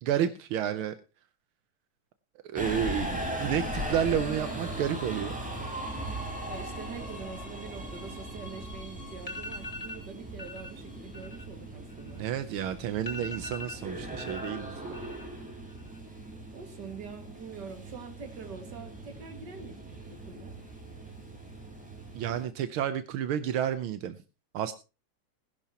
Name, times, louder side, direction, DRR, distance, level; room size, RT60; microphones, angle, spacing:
voice 1, 0.0-0.9 2.4-5.4 12.2-14.7 22.1-24.2 24.5-24.7, right 9 dB, 85° right, 10 dB, 1.7 m, -30 dB
Subway metro underground, 2.6-22.5, right 1 dB, 5° right, 4.4 m, -39 dB
voice 2, 6.5-12.2 16.5-20.6, right 5 dB, 55° right, 5 dB, 2.7 m, -44 dB
sound 1, 9.2-10.0 10.4-10.7 11.0-12.5 12.7-12.8 13.1-14.5 14.8-15.4 15.7-16.2, left 2 dB, 15° left, 2.8 m, -41 dB
19.5 x 11.5 x 2.9 m, 0.30 s
omnidirectional pair, 2.2 m